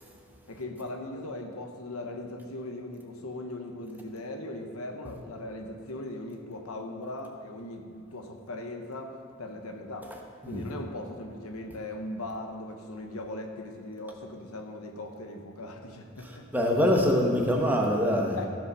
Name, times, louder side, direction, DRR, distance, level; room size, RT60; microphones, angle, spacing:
voice 1, 0.5-10.1 10.4-16.5 18.3-18.5, left 1 dB, 70° left, 4 dB, 1.1 m, -39 dB
voice 2, 16.5-18.4, equal, 10° right, 0 dB, 1.1 m, -24 dB
15.0 x 5.3 x 6.2 m, 2.2 s
head